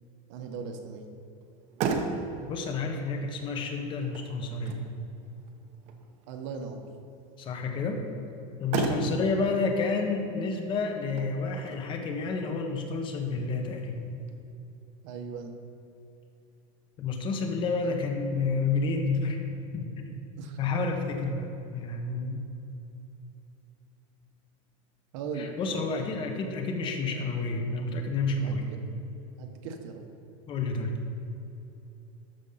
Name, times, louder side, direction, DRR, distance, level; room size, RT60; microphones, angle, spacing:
voice 1, 0.3-1.1 6.3-6.8 8.9-9.3 15.0-15.5 17.8-17.9 20.4-20.6 25.1-25.9 28.4-28.8 29.4-30.0, right 5 dB, 60° right, 4 dB, 1.4 m, -39 dB
Motor vehicle (road), 1.4-14.4, right 4 dB, 40° right, 0.9 m, -38 dB
voice 2, 2.5-4.8 7.4-8.0 8.6-14.0 17.0-19.4 19.7-19.9 20.6-22.4 25.4-28.7 30.5-30.9, left 3 dB, 30° left, 4 dB, 1.2 m, -30 dB
13.5 x 5.3 x 5.8 m, 2.9 s
supercardioid pair, 160°, 17 cm